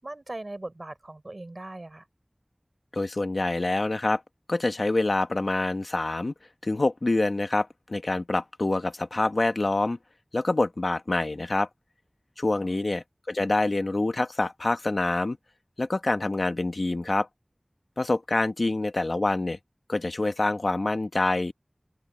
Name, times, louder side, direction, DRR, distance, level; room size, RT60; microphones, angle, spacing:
voice 1, 0.0-2.0 12.6-13.0, right 2 dB, 55° right, 5.2 m, -40 dB
voice 2, 2.9-4.2 4.5-6.3 6.6-10.0 10.3-11.7 12.4-15.4 15.8-17.3 18.0-19.6 19.9-21.5, left 2 dB, 80° left, 1.3 m, -26 dB
open air
wide cardioid pair, 45°, 0 cm